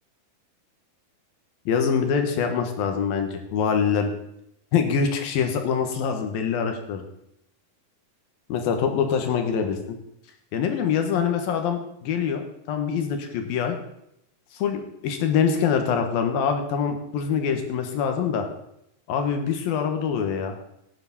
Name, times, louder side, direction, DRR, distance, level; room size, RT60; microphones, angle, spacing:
voice 1, 1.7-4.1 4.7-7.0 8.5-9.8 10.5-12.4 12.7-13.8 14.5-18.5 19.1-20.5, left 7 dB, 85° left, 5 dB, 3.2 m, -24 dB
15.5 x 9.9 x 4.2 m, 0.79 s
omnidirectional pair, 4.1 m